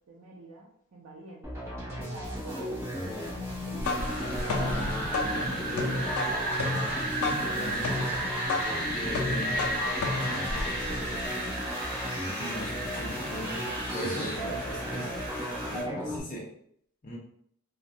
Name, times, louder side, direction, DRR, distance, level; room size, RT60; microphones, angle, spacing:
voice 1, 0.1-4.5 7.8-8.1 10.3-11.8 14.4-14.7 15.7-15.9, right 2 dB, 75° right, -3 dB, 0.4 m, -48 dB
sound 1, 1.4-16.2, equal, 15° right, 0.6 m, -35 dB
sound 2, 3.6-11.3, left 3 dB, 90° left, 0.4 m, -33 dB
Wind, 3.8-15.8, right 2 dB, 45° right, 1.2 m, -34 dB
voice 2, 4.1-6.1 7.1-7.9 8.9-9.7 12.4-15.1 15.6-16.5 17.0-17.2, equal, 40° left, -3 dB, 0.6 m, -39 dB
2.3 x 2.0 x 2.6 m, 0.67 s
head